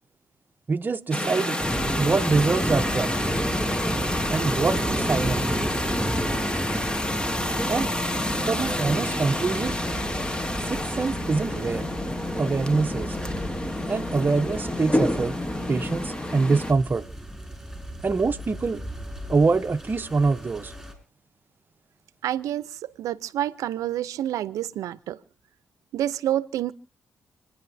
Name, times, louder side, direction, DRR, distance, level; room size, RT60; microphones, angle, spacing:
voice 1, 0.7-1.6 2.0-3.2 4.3-5.4 7.7-7.9 8.5-9.7 10.7-11.9 12.4-13.2 13.9-15.4 15.7-17.0 18.0-18.8 19.3-20.7, right 4 dB, 35° right, 0.8 m, -24 dB
sound 1, 1.1-16.7, left 1 dB, 15° left, 1.3 m, -28 dB
sound 2, 1.6-20.9, right 1 dB, ahead, 5.3 m, -33 dB
voice 2, 22.2-25.2 25.9-26.7, right 12 dB, 85° right, 0.7 m, -28 dB
28.5 x 10.0 x 2.7 m
cardioid pair, 70°, 6 cm